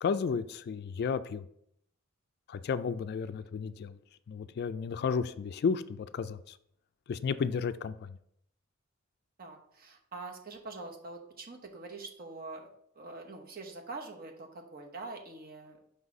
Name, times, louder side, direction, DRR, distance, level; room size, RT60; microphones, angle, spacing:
voice 1, 0.0-1.5 2.5-4.0 4.3-6.6 7.1-8.2, left 6 dB, 50° left, 13 dB, 0.3 m, -33 dB
voice 2, 9.4-12.7 12.9-15.8, right 3 dB, 50° right, 2 dB, 1.0 m, -44 dB
5.4 x 4.1 x 4.7 m, 0.72 s
head